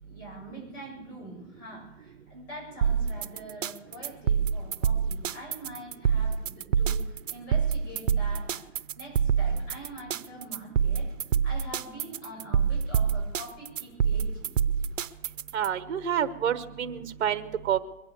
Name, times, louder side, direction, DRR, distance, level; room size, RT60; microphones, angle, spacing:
voice 1, 0.0-8.6 9.0-11.1 11.4-14.5, right 1 dB, 25° left, -5 dB, 7.6 m, -44 dB
sound 1, 2.8-15.7, right 7 dB, 80° right, 0.9 m, -26 dB
voice 2, 15.5-17.8, right 9 dB, 60° right, 12 dB, 1.2 m, -28 dB
22.5 x 9.0 x 7.1 m, 0.96 s
hypercardioid pair, 165°, 38 cm